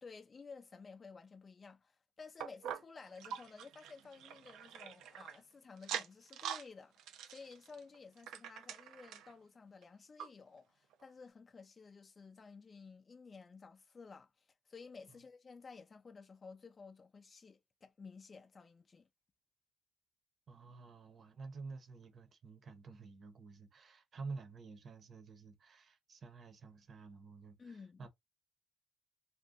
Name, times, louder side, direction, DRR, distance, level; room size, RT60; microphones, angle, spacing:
voice 1, 0.0-19.1 27.6-28.1, left 4 dB, 35° left, 0.5 m, -54 dB
sound 1, 2.4-5.4 5.8-6.7 7.0-9.3 9.8-9.9 10.2-10.3 10.9-11.0, right 9 dB, 90° right, 0.4 m, -45 dB
voice 2, 20.5-28.1, right 4 dB, 50° right, 0.8 m, -50 dB
2.5 x 2.2 x 3.6 m
cardioid pair, 90°, 0 cm